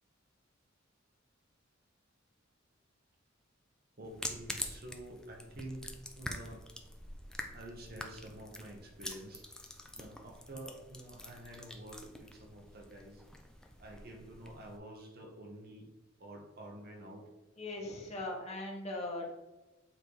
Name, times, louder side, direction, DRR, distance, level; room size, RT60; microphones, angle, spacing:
sound 1, 4.0-14.8, left 1 dB, 5° left, 0.5 m, -46 dB
voice 1, 4.0-6.6 7.5-9.4 10.0-13.2 13.8-15.9 16.2-17.3, right 1 dB, 50° right, 1 dB, 1.1 m, -49 dB
voice 2, 17.5-19.3, left 2 dB, 35° left, -2 dB, 1.5 m, -39 dB
7.9 x 3.3 x 4.7 m, 1.1 s
head